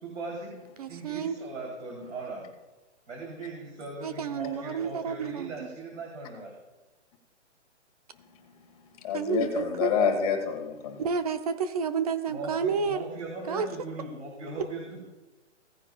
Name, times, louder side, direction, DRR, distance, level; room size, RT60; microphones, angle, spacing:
voice 1, 0.0-2.5 3.1-6.5 12.3-15.0, right 2 dB, 80° right, -2 dB, 3.1 m, -39 dB
voice 2, 0.8-1.3 4.0-5.5 9.1-9.9 11.0-13.1 13.5-13.7, right 6 dB, 30° right, 10 dB, 0.7 m, -30 dB
voice 3, 9.0-11.0, left 6 dB, 30° left, 4 dB, 1.6 m, -27 dB
17.0 x 9.7 x 2.2 m, 1.1 s
hypercardioid pair, 165°, 36 cm